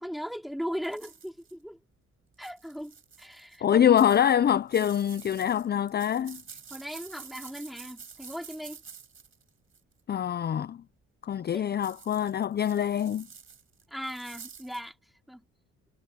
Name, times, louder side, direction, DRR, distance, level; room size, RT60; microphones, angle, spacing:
voice 1, 0.0-1.8 2.4-3.8 6.7-8.8 11.5-11.7 13.9-14.9 15.3-15.4, equal, ahead, 4.3 m, -38 dB
sound 1, 0.8-1.5 2.3-3.6 4.0-9.9 11.8-14.9, right 6 dB, 45° right, 4.7 m, -48 dB
voice 2, 3.6-6.4 10.1-10.8 11.2-13.3, left 9 dB, 35° left, 0.5 m, -25 dB
cardioid pair, 90°, 30 cm